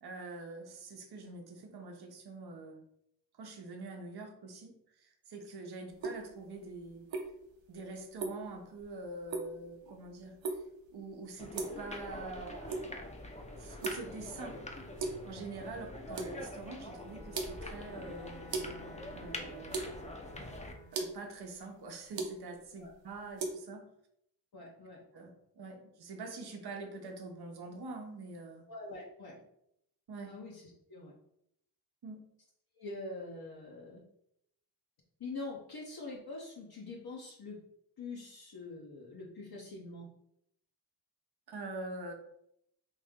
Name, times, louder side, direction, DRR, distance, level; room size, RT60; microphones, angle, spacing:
voice 1, 0.0-2.8 3.3-7.1 7.7-10.6 10.9-13.0 13.6-14.6 15.2-18.4 19.1-19.8 20.9-23.9 25.1-28.7 30.1-30.4 32.0-32.2 41.5-42.1, right 3 dB, 60° right, 3 dB, 0.8 m, -45 dB
sound 1, 5.9-23.5, right 3 dB, 90° right, 0.7 m, -42 dB
sound 2, 11.4-20.7, left 1 dB, 15° left, 0.6 m, -45 dB
Bowed string instrument, 16.6-21.1, left 2 dB, 85° left, 1.2 m, -54 dB
voice 2, 24.5-25.0 28.7-29.3 30.3-31.1 32.8-34.0 35.2-37.6 38.0-40.1, left 3 dB, 55° left, -3 dB, 0.8 m, -44 dB
3.2 x 2.6 x 3.6 m, 0.76 s
cardioid pair, 45°, 44 cm